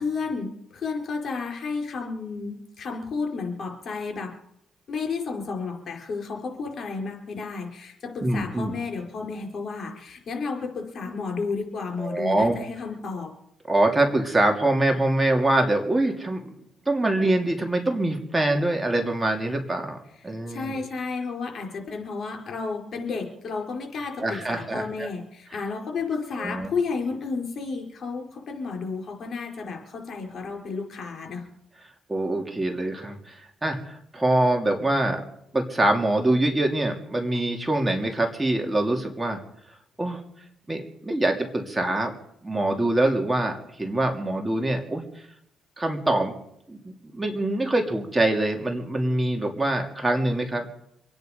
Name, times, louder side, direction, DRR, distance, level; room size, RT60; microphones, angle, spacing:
voice 1, 0.0-4.3 4.9-13.3 20.5-31.5, left 4 dB, 55° left, 2 dB, 4.8 m, -32 dB
voice 2, 8.2-8.7 12.0-12.6 13.7-16.5 16.9-20.0 20.2-20.8 24.2-25.1 26.4-26.7 32.1-35.2 35.5-39.4 40.0-40.2 40.7-42.1 42.4-45.0 45.8-46.3 46.7-50.7, right 1 dB, 15° right, 2 dB, 2.8 m, -24 dB
26.0 x 9.8 x 5.3 m, 0.75 s
cardioid pair, 90°, 0 cm